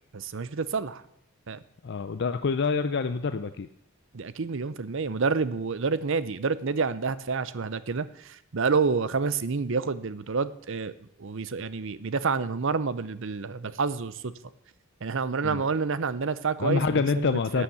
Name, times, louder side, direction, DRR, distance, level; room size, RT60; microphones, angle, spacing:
voice 1, 0.1-1.0 1.5-1.6 4.1-10.9 11.2-14.3 15.0-17.3 17.5-17.6, right 4 dB, 60° right, 16 dB, 0.6 m, -28 dB
voice 2, 1.8-3.7 15.4-15.6 16.6-17.6, left 4 dB, 50° left, 10 dB, 0.5 m, -26 dB
11.5 x 8.5 x 7.2 m, 0.73 s
head